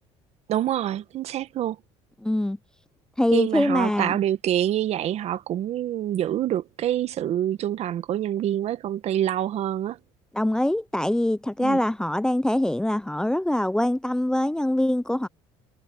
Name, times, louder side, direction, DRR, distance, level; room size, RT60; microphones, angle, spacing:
voice 1, 0.5-1.8 3.3-10.0 11.6-11.8, right 11 dB, 55° right, 1.7 m, -26 dB
voice 2, 2.2-2.6 3.2-4.1 10.3-15.3, left 1 dB, 5° left, 0.8 m, -23 dB
supercardioid pair, 85°, 13 cm